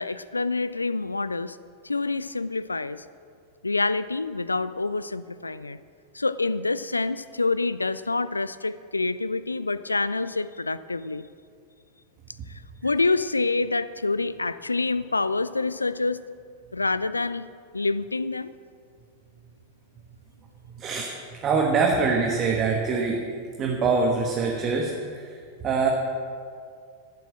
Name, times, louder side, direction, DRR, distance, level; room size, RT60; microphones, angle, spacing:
voice 1, 0.0-1.6 1.8-3.0 3.6-5.8 6.1-11.2 12.8-16.2 16.7-17.5 17.7-18.5, left 3 dB, 80° left, 16 dB, 0.4 m, -27 dB
voice 2, 20.8-21.1 21.4-23.2 23.6-24.9 25.6-25.9, right 4 dB, 30° right, 0 dB, 1.4 m, -23 dB
13.0 x 7.6 x 7.6 m, 2.2 s
figure-of-eight pair, 90°, 0 cm